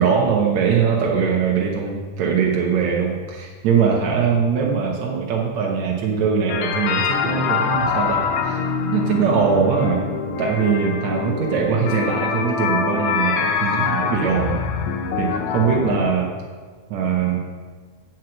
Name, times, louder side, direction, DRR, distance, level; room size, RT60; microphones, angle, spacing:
voice 1, 0.0-8.6 8.9-10.0 10.4-14.6 15.2-16.3 16.9-17.4, right 6 dB, 65° right, -2 dB, 2.1 m, -21 dB
sound 1, 6.5-16.1, left 6 dB, 75° left, 2.3 m, -24 dB
8.1 x 6.0 x 7.7 m, 1.5 s
omnidirectional pair, 3.8 m